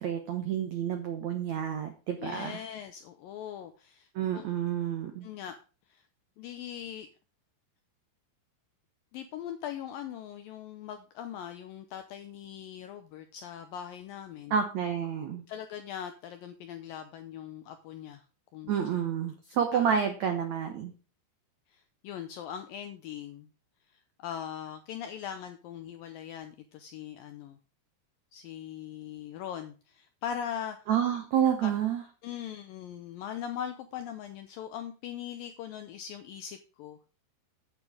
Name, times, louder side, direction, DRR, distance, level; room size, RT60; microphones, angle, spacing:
voice 1, 0.0-2.5 4.2-5.3 14.5-15.4 18.7-20.9 30.9-32.0, right 8 dB, 80° right, 6 dB, 1.6 m, -29 dB
voice 2, 2.2-4.5 5.2-5.6 5.9-6.1 6.4-7.1 9.1-14.6 15.5-18.2 18.5-18.7 19.7-19.9 21.7-23.5 24.2-27.6 28.3-30.8 31.6-31.7 32.2-37.0, left 9 dB, 80° left, 8 dB, 2.0 m, -40 dB
8.8 x 8.3 x 4.9 m, 0.34 s
omnidirectional pair, 4.9 m